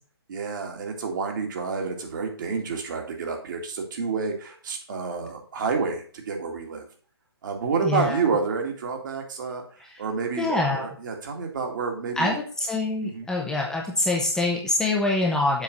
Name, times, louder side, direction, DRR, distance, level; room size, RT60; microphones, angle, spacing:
voice 1, 0.3-6.9 7.4-9.6 10.0-12.4 13.0-13.3, right 5 dB, 50° right, 2 dB, 2.0 m, -29 dB
voice 2, 7.8-8.3 9.8-10.0 10.4-10.9 12.2-15.6, left 2 dB, 5° left, -1 dB, 0.8 m, -25 dB
7.4 x 3.9 x 6.3 m, 0.43 s
figure-of-eight pair, 140°, 14 cm